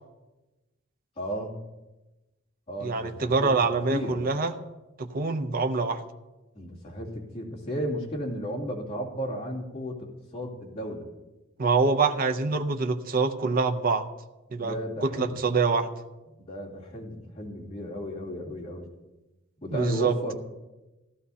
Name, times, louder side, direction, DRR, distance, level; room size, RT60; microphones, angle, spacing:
voice 1, 1.2-1.6 2.7-3.5 3.9-4.2 6.5-11.1 14.6-15.4 16.4-18.9 19.6-20.3, equal, 30° left, -4 dB, 2.6 m, -34 dB
voice 2, 2.8-4.5 5.0-6.0 11.6-14.1 14.5-14.8 15.0-15.9 19.7-20.1, right 4 dB, 45° right, 6 dB, 0.7 m, -25 dB
15.5 x 12.5 x 2.8 m, 1.1 s
head